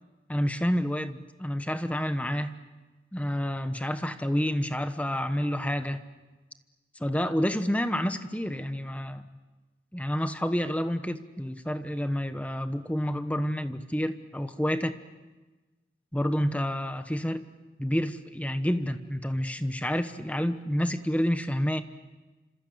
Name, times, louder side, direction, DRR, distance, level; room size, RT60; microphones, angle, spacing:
voice 1, 0.3-2.5 3.1-6.0 7.0-9.2 9.9-14.9 16.1-17.4 17.8-21.8, equal, 10° left, 9 dB, 1.1 m, -29 dB
28.0 x 26.5 x 8.1 m, 1.2 s
head